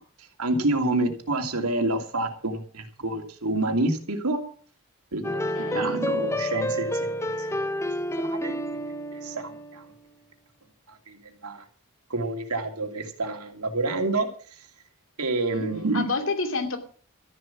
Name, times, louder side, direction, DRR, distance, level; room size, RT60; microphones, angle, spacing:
voice 1, 0.4-4.4 5.1-7.1 7.4-7.7 8.2-8.5 9.1-9.9 11.1-11.6 12.1-14.3 15.2-16.0, right 2 dB, 90° right, 5 dB, 2.8 m, -28 dB
sound 1, 5.2-9.9, equal, 15° left, 0.8 m, -29 dB
voice 2, 5.5-5.9 15.5-16.8, left 3 dB, 65° left, 6 dB, 2.7 m, -29 dB
13.5 x 11.0 x 6.0 m, 0.43 s
head